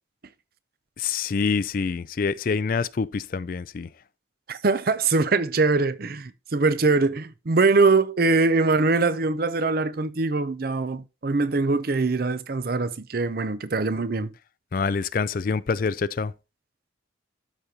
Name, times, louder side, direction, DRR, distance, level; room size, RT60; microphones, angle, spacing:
voice 1, 1.0-3.9 14.7-16.3, left 5 dB, 45° left, 0.4 m, -26 dB
voice 2, 4.5-14.3, right 3 dB, 50° right, 0.6 m, -22 dB
12.5 x 5.2 x 2.8 m
head